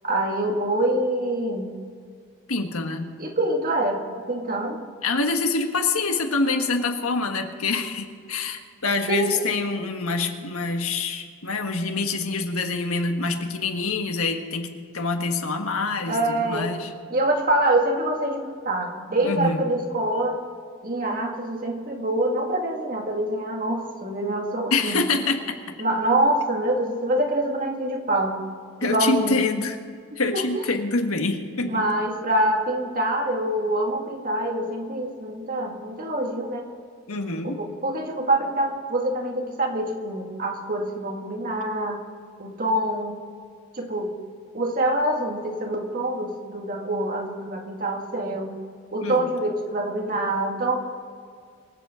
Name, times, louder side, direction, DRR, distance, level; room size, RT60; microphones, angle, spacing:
voice 1, 0.0-1.7 3.2-4.0 4.3-4.8 9.1-9.4 16.1-16.7 17.1-20.4 20.8-25.0 25.8-28.4 28.8-29.4 30.3-30.7 31.6-36.6 37.4-42.0 42.4-43.2 43.7-44.1 44.5-48.5 48.9-50.8, right 1 dB, 40° right, 2 dB, 2.0 m, -25 dB
voice 2, 2.5-3.1 5.0-16.9 19.2-19.7 24.7-25.6 28.8-29.8 30.2-31.8 37.1-37.6 49.0-49.3, left 3 dB, 80° left, 5 dB, 1.6 m, -26 dB
24.5 x 8.3 x 5.0 m, 2.1 s
head